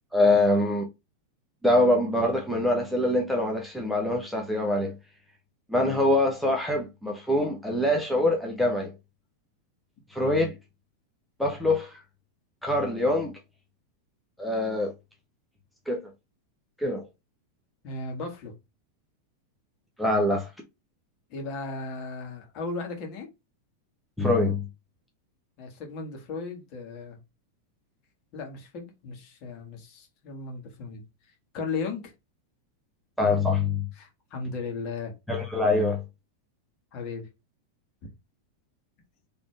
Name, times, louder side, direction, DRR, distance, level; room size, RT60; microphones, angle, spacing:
voice 1, 0.1-0.8 1.6-4.9 5.7-8.9 10.1-10.5 11.4-12.0 12.6-13.4 14.4-14.9 15.9-16.0 16.8-17.0 20.0-20.5 24.2-24.6 33.2-33.8 35.3-36.0, left 1 dB, ahead, 1.0 m, -24 dB
voice 2, 17.8-18.5 21.3-23.3 25.6-27.2 28.3-31.0 31.5-32.1 33.9-35.1 36.9-37.3, left 4 dB, 40° left, 1.8 m, -36 dB
4.2 x 3.3 x 3.2 m
figure-of-eight pair, 90°, 0 cm